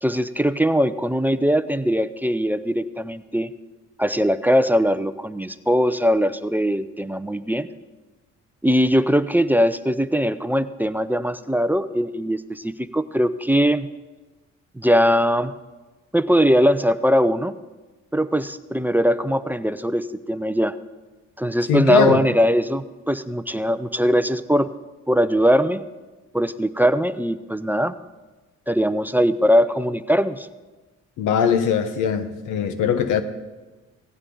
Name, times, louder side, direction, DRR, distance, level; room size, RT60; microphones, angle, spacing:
voice 1, 0.0-3.5 4.0-7.7 8.6-13.9 14.8-15.5 16.1-17.5 18.1-20.8 21.4-24.7 25.1-25.8 26.3-27.9 28.7-30.5, equal, 5° right, 13 dB, 0.5 m, -20 dB
voice 2, 21.7-22.2 31.2-33.2, left 7 dB, 90° left, 10 dB, 1.2 m, -21 dB
17.0 x 16.0 x 3.9 m, 1.2 s
cardioid pair, 90°, 30 cm